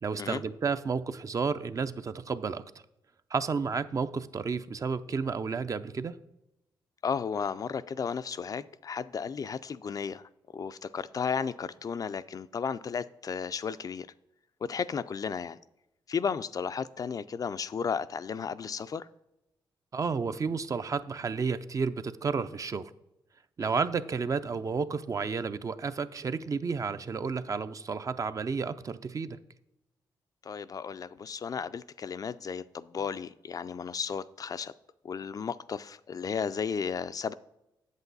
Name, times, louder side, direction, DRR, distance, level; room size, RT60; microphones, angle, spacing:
voice 1, 0.0-2.6 3.3-6.1 19.9-22.9 23.6-29.4, right 5 dB, 40° right, 12 dB, 0.5 m, -31 dB
voice 2, 7.0-14.1 14.6-15.6 16.1-19.1 23.6-23.8 30.4-34.7 35.0-37.3, left 6 dB, 45° left, 14 dB, 0.3 m, -34 dB
8.2 x 7.5 x 4.0 m, 0.90 s
cardioid pair, 80°, 8 cm